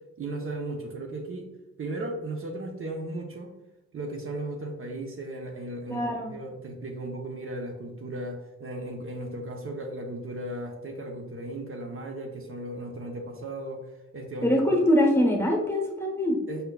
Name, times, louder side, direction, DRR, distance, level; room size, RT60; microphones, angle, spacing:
voice 1, 0.2-1.5 1.8-3.5 3.9-13.8 14.1-14.5 16.5-16.7, right 1 dB, 45° right, 2 dB, 0.7 m, -36 dB
voice 2, 5.9-6.3 14.4-16.4, left 1 dB, 10° left, 1 dB, 0.9 m, -23 dB
5.3 x 4.3 x 2.2 m, 1.0 s
cardioid pair, 90°, 29 cm